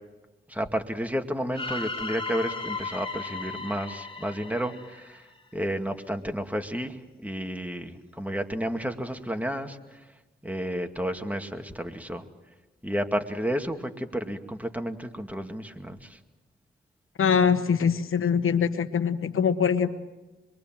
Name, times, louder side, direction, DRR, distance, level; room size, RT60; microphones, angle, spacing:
voice 1, 0.5-10.2 10.4-12.3 12.8-16.2, equal, 5° right, 5 dB, 2.3 m, -32 dB
sound 1, 1.5-5.6, left 3 dB, 25° left, 2.7 m, -36 dB
voice 2, 17.2-19.9, left 7 dB, 90° left, 11 dB, 1.1 m, -23 dB
26.0 x 23.0 x 7.6 m, 1.1 s
cardioid pair, 55°, 21 cm